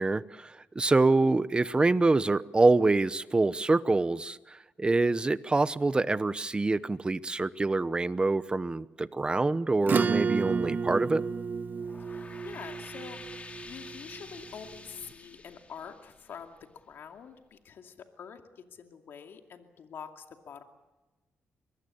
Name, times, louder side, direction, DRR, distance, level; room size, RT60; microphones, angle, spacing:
voice 1, 0.0-11.2, right 3 dB, 25° right, 16 dB, 0.9 m, -26 dB
Acoustic guitar / Strum, 9.8-14.8, right 5 dB, 50° right, 1.0 m, -31 dB
sound 1, 11.7-16.9, left 3 dB, 35° left, 3.3 m, -48 dB
voice 2, 12.1-13.2 13.6-20.6, left 7 dB, 75° left, 5 dB, 2.4 m, -46 dB
24.5 x 21.0 x 8.6 m, 1.1 s
cardioid pair, 80°, 4 cm